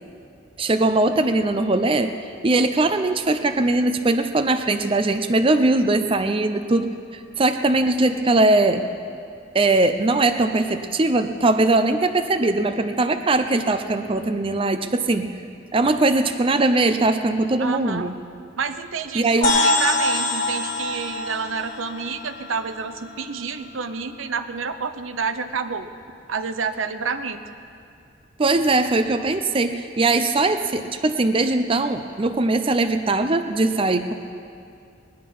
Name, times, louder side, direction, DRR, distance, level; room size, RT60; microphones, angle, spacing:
voice 1, 0.6-2.2 2.4-6.9 7.4-8.9 9.5-15.3 15.7-18.2 19.1-19.6 28.4-34.1, right 2 dB, 25° right, 8 dB, 0.5 m, -20 dB
voice 2, 17.6-18.1 18.6-25.9 26.3-27.4, right 5 dB, 85° right, 8 dB, 0.8 m, -29 dB
sound 1, 19.4-23.2, left 2 dB, 45° left, 1.4 m, -24 dB
20.0 x 10.5 x 5.5 m, 2.4 s
head